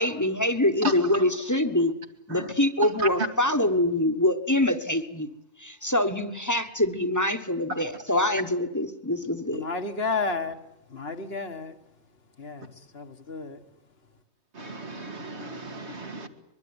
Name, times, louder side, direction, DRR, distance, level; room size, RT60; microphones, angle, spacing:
voice 1, 0.0-1.9 2.3-5.3 5.6-9.7, left 1 dB, 15° left, 1.3 m, -25 dB
voice 2, 2.8-3.3 14.5-16.3, right 1 dB, 80° right, 2.6 m, -32 dB
voice 3, 9.5-10.6 10.9-11.8 12.4-13.6, left 4 dB, 60° left, 1.9 m, -32 dB
23.5 x 22.5 x 9.8 m
omnidirectional pair, 1.1 m